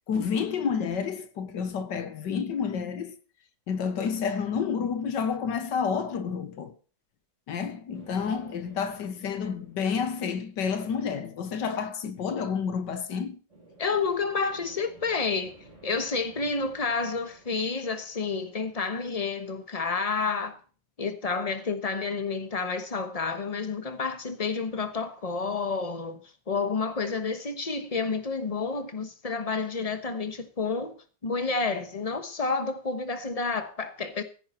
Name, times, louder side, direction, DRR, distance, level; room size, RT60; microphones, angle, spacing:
voice 1, 0.1-3.2 3.7-6.7 7.5-13.4, left 6 dB, 85° left, 1.9 m, -30 dB
sound 1, 7.9-10.7 13.5-18.9, right 2 dB, 40° right, 4.7 m, -54 dB
voice 2, 13.8-15.5 15.8-20.6 21.0-26.2 26.5-31.0 31.2-34.2, left 4 dB, 25° left, 1.2 m, -30 dB
15.5 x 9.6 x 4.4 m
omnidirectional pair, 1.9 m